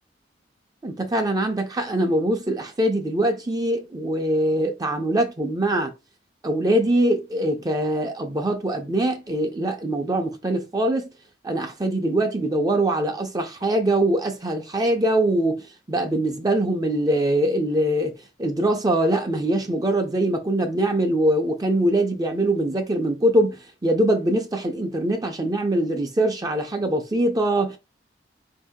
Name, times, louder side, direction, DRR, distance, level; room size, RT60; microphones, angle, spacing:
voice 1, 0.8-5.9 6.4-11.1 11.4-18.1 18.4-27.8, right 1 dB, 20° right, 0.5 m, -23 dB
4.4 x 2.7 x 3.5 m
head